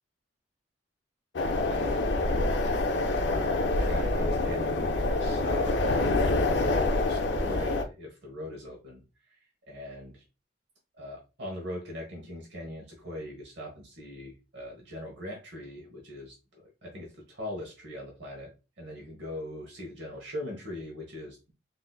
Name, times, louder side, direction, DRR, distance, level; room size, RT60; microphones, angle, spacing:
sound 1, 1.3-7.8, left 2 dB, 70° left, 0.5 m, -26 dB
voice 1, 1.6-2.1 2.6-9.4 9.7-10.3 10.9-16.4 16.6-21.5, left 1 dB, 70° right, -1 dB, 1.0 m, -41 dB
3.7 x 2.6 x 2.3 m, 0.30 s
head